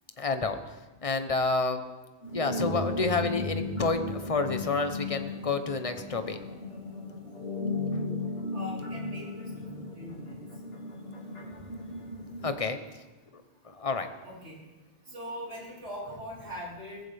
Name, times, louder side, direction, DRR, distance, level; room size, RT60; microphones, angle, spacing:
voice 1, 0.2-0.6 1.0-1.8 2.3-6.4 12.4-12.8 13.6-14.1, left 3 dB, 35° left, 8 dB, 1.0 m, -29 dB
sound 1, 2.2-12.5, left 2 dB, 65° left, 2.5 m, -36 dB
voice 2, 8.5-9.5 9.7-10.3 14.2-14.5 15.1-17.0, equal, 85° right, -6 dB, 4.7 m, -41 dB
20.0 x 14.5 x 3.5 m, 1.2 s
omnidirectional pair, 1.1 m